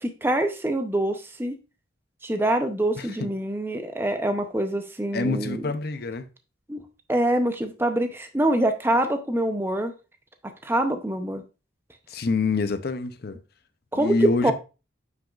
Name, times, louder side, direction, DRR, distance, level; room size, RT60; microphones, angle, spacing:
voice 1, 0.0-1.6 2.2-5.6 6.7-6.8 7.1-9.9 10.6-11.4 13.9-14.1 14.4-14.5, right 1 dB, 10° right, 0.6 m, -25 dB
voice 2, 2.9-3.3 5.1-6.2 12.1-13.4 13.9-14.5, left 3 dB, 50° left, 0.6 m, -26 dB
7.5 x 6.0 x 2.4 m
head